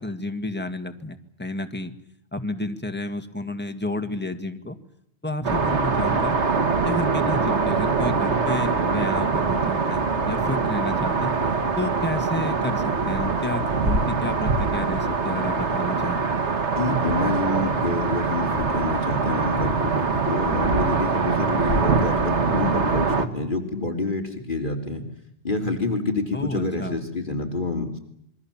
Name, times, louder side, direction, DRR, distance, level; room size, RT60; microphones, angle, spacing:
voice 1, 0.0-1.9 2.3-4.8 5.2-6.4 6.8-11.3 11.8-16.2 26.3-27.0, left 2 dB, 10° left, 7 dB, 2.0 m, -31 dB
sound 1, 5.4-23.3, right 4 dB, 80° right, 2.0 m, -23 dB
voice 2, 16.8-25.0 25.4-28.0, left 2 dB, 45° left, 4 dB, 3.2 m, -27 dB
27.5 x 22.5 x 7.3 m, 0.75 s
omnidirectional pair, 1.2 m